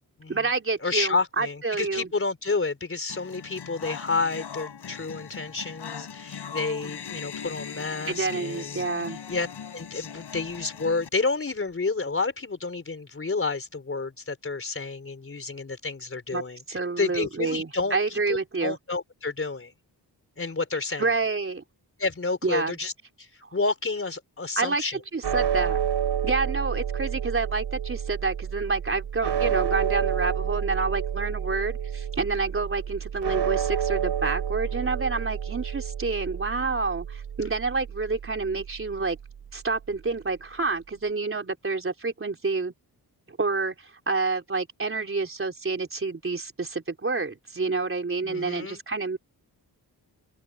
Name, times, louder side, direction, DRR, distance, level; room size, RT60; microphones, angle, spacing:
voice 1, 0.3-2.1 8.1-9.2 16.3-16.4 16.7-18.8 21.0-21.6 22.4-22.8 24.6-25.8 26.2-39.2 39.5-42.7 43.3-49.2, right 4 dB, 30° right, 4.0 m, -28 dB
voice 2, 0.8-8.8 9.3-9.5 9.7-19.7 20.4-21.1 22.0-22.9 23.2-25.0 48.2-48.8, left 3 dB, 35° left, 4.3 m, -30 dB
sound 1, 3.1-11.1, left 7 dB, 80° left, 7.6 m, -40 dB
sound 2, 25.2-39.5, right 8 dB, 90° right, 3.2 m, -30 dB
wide cardioid pair, 150°, 40 cm